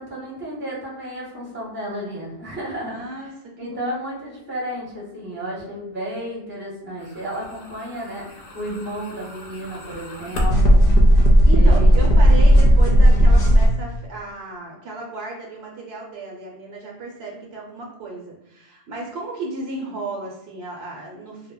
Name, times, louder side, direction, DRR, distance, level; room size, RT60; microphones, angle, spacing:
voice 1, 0.0-3.0 3.6-10.8 11.5-12.1, right 1 dB, 10° right, -4 dB, 0.6 m, -32 dB
voice 2, 2.8-3.3 3.6-4.0 11.5-21.5, right 2 dB, 70° right, -1 dB, 0.8 m, -34 dB
sound 1, 8.5-13.7, equal, 60° left, 0.7 m, -14 dB
2.1 x 2.0 x 3.6 m, 0.83 s
omnidirectional pair, 1.2 m